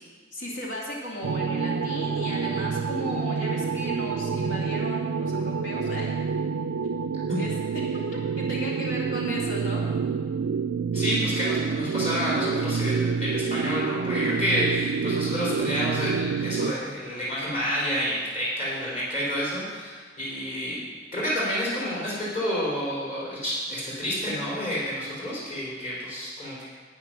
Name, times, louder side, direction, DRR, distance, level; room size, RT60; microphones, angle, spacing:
voice 1, 0.3-6.1 7.4-7.5 7.8-9.8, equal, 65° left, -3 dB, 2.2 m, -35 dB
sound 1, 1.2-16.7, right 5 dB, 80° right, 0.4 m, -28 dB
voice 2, 10.9-20.8 21.1-26.7, equal, 40° left, -7 dB, 4.0 m, -29 dB
11.0 x 8.9 x 5.9 m, 1.5 s
head